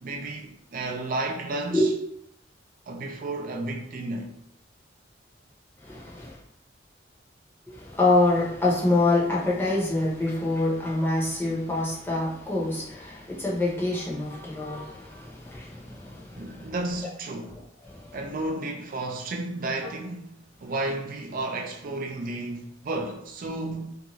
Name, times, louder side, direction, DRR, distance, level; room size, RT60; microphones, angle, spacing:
voice 1, 0.0-1.9 2.9-4.3 16.4-17.6 18.1-23.9, right 2 dB, 50° right, 0.4 m, -32 dB
voice 2, 5.8-6.4 7.7-16.7 17.8-18.2, left 2 dB, 15° left, 0.8 m, -26 dB
2.6 x 2.3 x 3.0 m
head